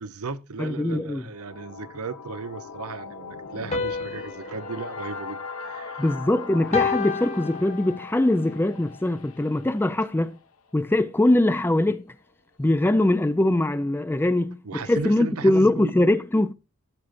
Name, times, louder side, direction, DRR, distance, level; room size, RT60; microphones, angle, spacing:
voice 1, 0.0-6.0 14.6-15.9, right 4 dB, 70° right, 0.7 m, -35 dB
voice 2, 0.6-1.2 6.0-10.4 10.7-12.2 12.6-16.5, left 1 dB, 10° left, 0.4 m, -22 dB
sound 1, 1.1-11.0, left 4 dB, 70° left, 1.3 m, -40 dB
sound 2, 3.7-6.2 6.7-8.3, left 5 dB, 30° left, 0.7 m, -31 dB
13.5 x 7.6 x 2.5 m
head